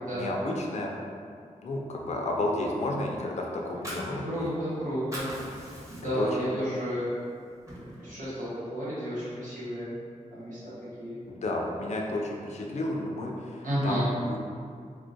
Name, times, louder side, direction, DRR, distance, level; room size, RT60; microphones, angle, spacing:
voice 1, 0.1-0.9 1.6-4.5 6.0-6.5 11.3-14.4, left 2 dB, 60° left, 0 dB, 0.4 m, -32 dB
Fire, 3.6-4.7 5.0-6.3 6.8-6.9 7.3-8.3, equal, 25° right, 0.7 m, -40 dB
voice 2, 4.2-5.3 5.9-7.2 8.0-10.0 10.3-10.6 11.0-11.2 13.6-14.1, equal, 90° right, -11 dB, 0.9 m, -31 dB
2.2 x 2.1 x 2.5 m, 2.2 s
cardioid pair, 55°, 13 cm